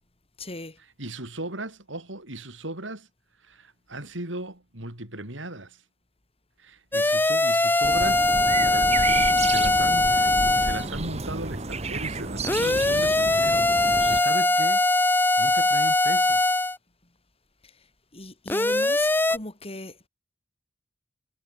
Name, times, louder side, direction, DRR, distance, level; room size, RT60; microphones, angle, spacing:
voice 1, 0.4-0.8 17.6-17.9 18.1-20.1, left 2 dB, 30° left, 6.5 m, -38 dB
voice 2, 1.0-3.1 3.4-5.8 6.6-14.9 15.4-16.4, right 2 dB, 75° right, 5.5 m, -37 dB
sound 1, 6.9-10.9 12.4-16.8 18.5-19.4, left 2 dB, 10° left, 0.8 m, -21 dB
sound 2, 7.8-14.2, right 3 dB, 35° right, 1.9 m, -31 dB
head